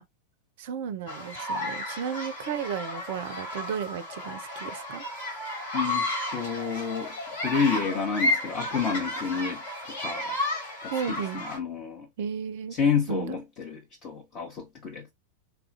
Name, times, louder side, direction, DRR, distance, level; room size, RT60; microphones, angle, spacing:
voice 1, 0.6-5.1 10.9-11.5 12.2-12.8 13.1-13.4, right 7 dB, 50° right, 0.4 m, -34 dB
sound 1, 1.1-11.6, left 1 dB, 60° left, 1.7 m, -32 dB
voice 2, 5.7-10.4 10.8-12.1 12.7-15.1, left 6 dB, 35° left, 0.9 m, -30 dB
3.4 x 2.3 x 2.5 m
figure-of-eight pair, 90°, 0 cm